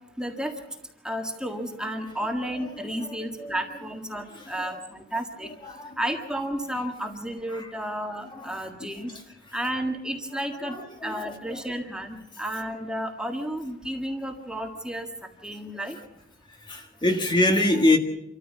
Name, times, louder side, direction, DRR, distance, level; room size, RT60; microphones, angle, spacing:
voice 1, 0.2-0.5 1.0-5.5 6.0-9.1 9.5-10.8 11.0-16.0, right 1 dB, 5° right, 3 dB, 1.7 m, -32 dB
voice 2, 4.3-4.7 5.6-6.0 7.5-7.7 8.2-8.9 10.6-11.6 16.6-18.0, left 1 dB, 25° left, 4 dB, 1.7 m, -26 dB
27.0 x 14.0 x 7.3 m, 0.88 s
head